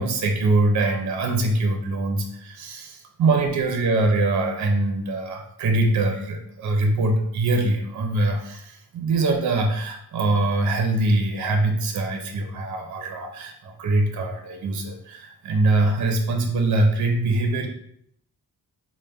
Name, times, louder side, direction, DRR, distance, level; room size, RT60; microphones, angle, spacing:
voice 1, 0.0-17.7, right 2 dB, 50° right, 3 dB, 0.5 m, -23 dB
4.1 x 2.1 x 3.4 m, 0.70 s
wide cardioid pair, 160°, 38 cm